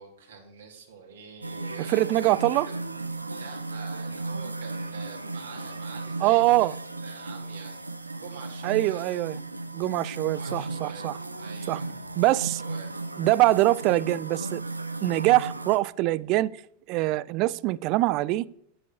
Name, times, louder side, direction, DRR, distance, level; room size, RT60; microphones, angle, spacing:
voice 1, 0.0-2.9 3.3-7.8 8.2-9.1 10.4-12.9, right 5 dB, 65° right, 2.4 m, -46 dB
sound 1, 1.4-15.8, right 3 dB, 85° right, 0.7 m, -35 dB
voice 2, 1.8-2.7 6.2-6.7 8.6-9.4 9.7-11.2 11.7-11.8 12.2-12.6 13.2-14.6 15.0-16.5 16.9-18.4, right 18 dB, 40° right, 0.4 m, -23 dB
8.4 x 8.4 x 5.6 m
figure-of-eight pair, 90°, 0 cm